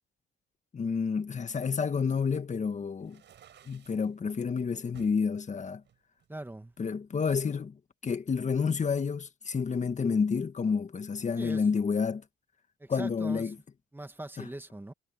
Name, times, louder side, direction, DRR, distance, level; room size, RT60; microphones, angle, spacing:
voice 1, 0.7-3.2 3.7-5.8 6.8-12.2 12.9-13.6 14.4-14.5, left 5 dB, 35° left, 1.7 m, -29 dB
sound 1, 3.0-4.1 4.9-5.2 5.8-6.9, right 9 dB, 65° right, 5.7 m, -56 dB
voice 2, 6.3-6.7 11.4-11.6 12.8-13.5 13.9-14.9, right 1 dB, 10° right, 2.0 m, -41 dB
cardioid pair, 90°, 20 cm